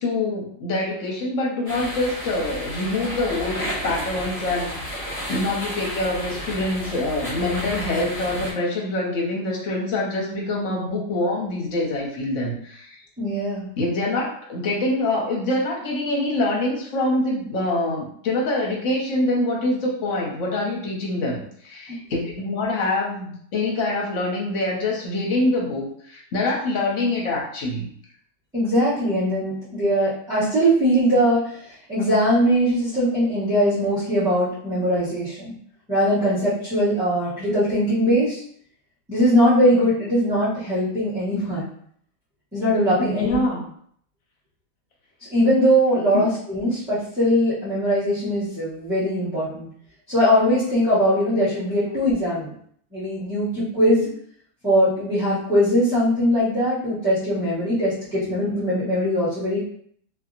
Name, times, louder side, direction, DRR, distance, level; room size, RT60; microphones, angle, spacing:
voice 1, 0.0-13.0 13.8-27.8 43.0-43.6 46.1-46.3, left 2 dB, 55° left, -2 dB, 1.0 m, -25 dB
sound 1, 1.7-8.5, equal, 25° left, 0.9 m, -32 dB
voice 2, 13.2-13.7 28.5-35.5 35.9-38.4 39.1-41.7 42.5-43.4 45.3-49.7 50.1-52.5 52.9-54.1 54.6-59.6, equal, ahead, -12 dB, 1.0 m, -21 dB
2.7 x 2.7 x 2.5 m, 0.62 s
omnidirectional pair, 1.8 m